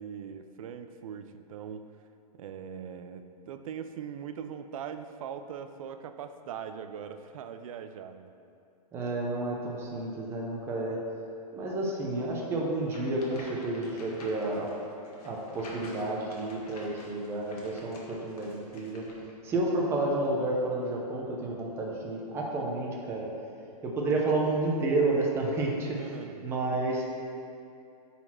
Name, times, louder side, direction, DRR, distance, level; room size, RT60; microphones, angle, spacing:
voice 1, 0.0-1.9 2.3-8.3 26.0-26.4, right 7 dB, 55° right, 9 dB, 0.5 m, -41 dB
voice 2, 8.9-11.0 11.5-14.7 15.2-19.1 19.4-23.3 23.8-26.0 26.4-27.1, right 2 dB, 10° right, -2 dB, 0.7 m, -30 dB
sound 1, 12.8-19.3, left 2 dB, 65° left, 1.6 m, -49 dB
8.7 x 4.2 x 4.3 m, 2.6 s
hypercardioid pair, 165°, 21 cm